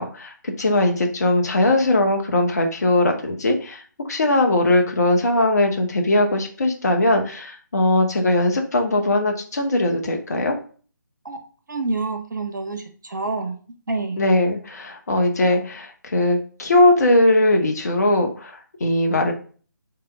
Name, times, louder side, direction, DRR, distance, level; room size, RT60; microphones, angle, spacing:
voice 1, 0.0-3.8 4.1-10.6 14.2-19.3, left 1 dB, 50° left, 3 dB, 0.9 m, -20 dB
voice 2, 11.7-13.6 13.9-14.2, right 3 dB, 65° right, 4 dB, 1.0 m, -27 dB
3.3 x 2.9 x 4.5 m, 0.42 s
figure-of-eight pair, 150°, 11 cm